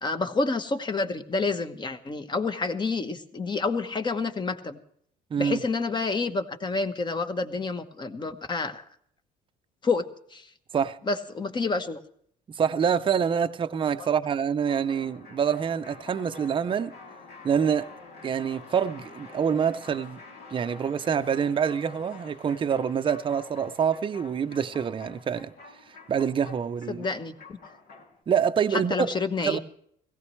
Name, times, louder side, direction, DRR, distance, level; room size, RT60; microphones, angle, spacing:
voice 1, 0.0-4.8 5.4-8.8 9.8-10.4 11.1-12.0 14.0-14.1 26.9-27.6 28.7-29.6, left 3 dB, 25° left, 1.0 m, -29 dB
voice 2, 5.3-5.6 10.7-11.0 12.5-16.9 17.4-17.9 18.2-20.2 20.5-25.5 26.1-27.0 28.3-29.1 29.4-29.6, right 7 dB, 30° right, 0.6 m, -26 dB
sound 1, 14.7-28.2, left 4 dB, 70° left, 2.5 m, -48 dB
17.5 x 16.0 x 3.1 m
cardioid pair, 110°, 17 cm